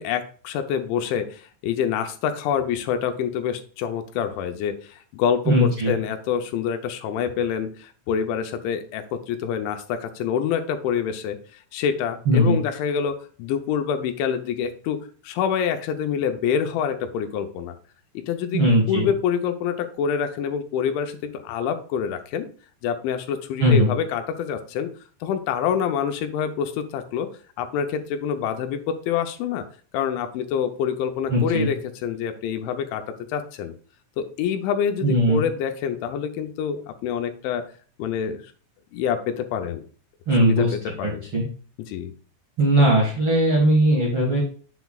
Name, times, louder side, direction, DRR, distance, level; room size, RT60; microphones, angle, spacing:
voice 1, 0.0-17.7 18.1-18.6 18.9-22.5 22.8-24.9 25.2-27.3 27.6-29.6 29.9-31.8 32.0-33.0 33.3-33.7 34.2-37.6 38.0-38.4 38.9-39.8 40.4-41.2 41.9-42.1, left 8 dB, 80° left, 8 dB, 3.0 m, -26 dB
voice 2, 5.4-5.9 12.2-12.6 18.5-19.1 23.6-23.9 31.3-31.7 35.0-35.4 40.3-40.7 41.0-41.4 42.6-44.4, right 1 dB, 60° right, -3 dB, 1.4 m, -19 dB
8.1 x 8.0 x 2.4 m, 0.42 s
omnidirectional pair, 5.5 m